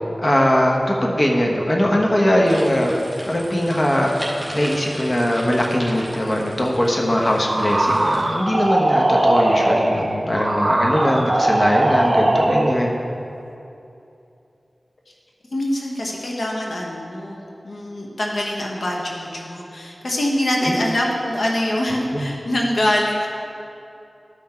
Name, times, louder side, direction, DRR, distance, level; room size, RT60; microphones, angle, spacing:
voice 1, 0.2-2.9 3.2-4.1 4.5-12.9 20.6-20.7 22.1-22.2, equal, 35° left, -1 dB, 1.1 m, -20 dB
sound 1, 2.4-8.2, equal, 20° right, 2.2 m, -35 dB
sound 2, 7.4-12.9, right 1 dB, 40° right, 0.8 m, -20 dB
voice 2, 15.5-23.3, left 1 dB, 75° left, -2 dB, 1.1 m, -24 dB
12.5 x 5.9 x 4.4 m, 2.7 s
wide cardioid pair, 55°, 0 cm